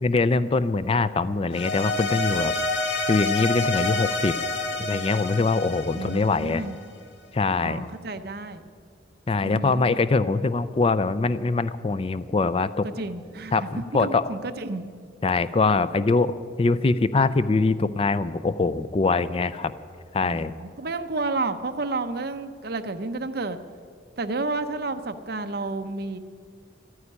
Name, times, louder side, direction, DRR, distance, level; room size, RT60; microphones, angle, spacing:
voice 1, 0.0-2.5 3.1-4.3 4.8-6.6 7.3-7.9 9.3-12.9 13.5-14.3 15.2-19.7 20.1-20.5, left 3 dB, 30° left, 14 dB, 0.4 m, -23 dB
sound 1, 1.5-6.8, left 3 dB, 70° left, 1.4 m, -28 dB
voice 2, 5.9-6.8 7.6-8.6 9.4-9.9 12.8-14.8 20.2-23.6 24.2-26.2, right 3 dB, 55° right, 9 dB, 0.8 m, -31 dB
13.0 x 9.6 x 9.9 m, 2.1 s
head